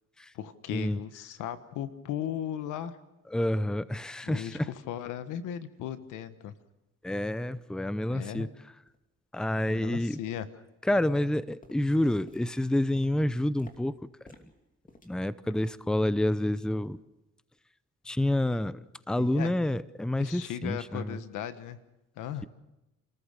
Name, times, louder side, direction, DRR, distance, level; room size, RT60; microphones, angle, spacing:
voice 1, 0.3-3.0 4.2-6.5 8.1-8.5 9.7-10.5 19.2-19.5 20.2-21.8 22.2-22.5, left 10 dB, 90° left, 12 dB, 1.3 m, -37 dB
voice 2, 3.3-4.7 7.0-8.5 9.3-10.2 10.8-13.9 15.0-17.0 18.0-18.8 19.1-21.2, left 1 dB, ahead, 16 dB, 0.7 m, -28 dB
sound 1, 7.6-7.7 8.2-8.3 8.9-9.0 9.6-9.9 10.2-10.7 11.0-15.9 16.2-16.5 16.8-17.0 17.6-17.7, left 2 dB, 25° left, 2.7 m, -58 dB
29.5 x 14.0 x 6.7 m, 0.97 s
cardioid pair, 90°, 30 cm